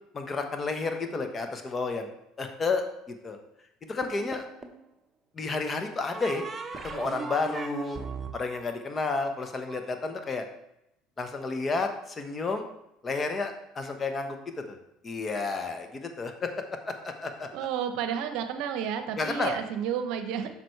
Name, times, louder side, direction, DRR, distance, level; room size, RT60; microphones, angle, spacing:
voice 1, 0.1-2.1 2.4-3.4 3.9-4.4 5.3-6.4 6.8-8.0 8.3-10.5 11.2-12.7 13.0-14.4 14.7-14.8 15.0-16.5 17.0-17.5 19.2-19.5, left 3 dB, 30° left, 5 dB, 1.1 m, -31 dB
sound 1, 4.0-4.9 6.1-9.8, right 4 dB, 25° right, 1.0 m, -38 dB
voice 2, 17.5-20.5, right 8 dB, 70° right, 8 dB, 0.7 m, -31 dB
7.7 x 5.9 x 3.2 m, 0.82 s
hypercardioid pair, 75°, 0 cm